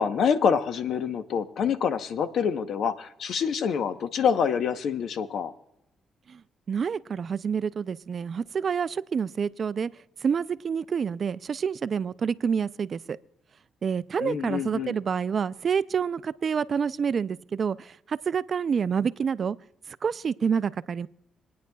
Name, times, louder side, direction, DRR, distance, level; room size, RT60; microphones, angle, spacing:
voice 1, 0.0-5.5 14.2-14.9, left 7 dB, 65° left, 10 dB, 0.9 m, -26 dB
voice 2, 6.7-9.9 10.2-13.2 13.8-19.6 19.9-21.1, right 6 dB, 50° right, 17 dB, 0.4 m, -28 dB
26.5 x 9.3 x 2.3 m, 0.85 s
cardioid pair, 90°, 0 cm